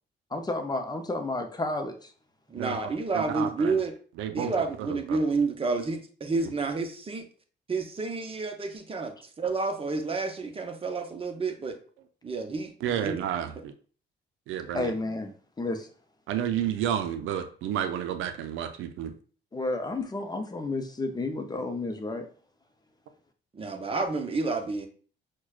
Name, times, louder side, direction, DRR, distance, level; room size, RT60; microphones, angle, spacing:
voice 1, 0.3-2.1 14.7-15.9 19.5-22.3, left 2 dB, 20° left, 0.5 m, -31 dB
voice 2, 2.5-3.9 4.3-7.2 7.7-11.8 12.2-13.2 23.5-24.9, right 3 dB, 30° right, 0.7 m, -30 dB
voice 3, 3.1-3.7 4.2-4.5 4.9-5.0 12.8-13.7 14.5-14.9 16.3-19.1, right 10 dB, 85° right, 0.5 m, -30 dB
6.0 x 2.2 x 2.3 m
cardioid pair, 90°, 20 cm